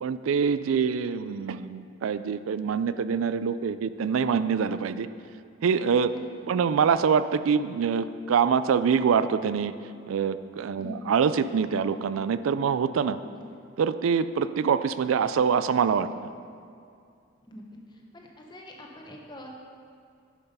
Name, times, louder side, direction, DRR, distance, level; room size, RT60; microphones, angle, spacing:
voice 1, 0.0-5.1 5.6-6.1 6.5-9.7 10.1-13.2 13.8-16.1, right 6 dB, 80° right, 13 dB, 0.3 m, -25 dB
voice 2, 17.9-19.5, equal, 20° left, 0 dB, 1.0 m, -43 dB
10.5 x 5.8 x 5.3 m, 2.3 s
head